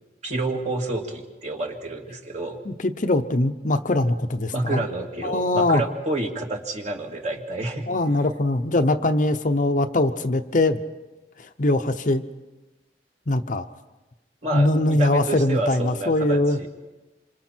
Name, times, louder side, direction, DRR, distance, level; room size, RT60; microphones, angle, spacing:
voice 1, 0.2-2.6 4.5-7.9 14.4-16.7, right 2 dB, 40° right, 1 dB, 2.3 m, -29 dB
voice 2, 2.6-4.8 5.2-5.8 7.9-10.8 11.4-12.2 13.3-13.7 14.5-16.6, left 2 dB, 45° left, 8 dB, 0.8 m, -22 dB
27.5 x 26.0 x 4.5 m, 1.1 s
head